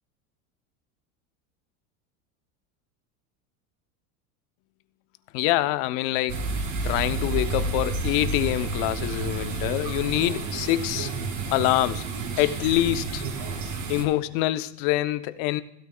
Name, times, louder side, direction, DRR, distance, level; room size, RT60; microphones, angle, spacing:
voice 1, 5.3-6.5 6.8-11.1 11.5-12.1 12.4-13.2 13.9-15.6, left 15 dB, 60° left, 0.7 m, -25 dB
sound 1, 6.3-14.0, right 3 dB, 50° right, 2.7 m, -30 dB
15.5 x 12.5 x 2.2 m
supercardioid pair, 125°, 40 cm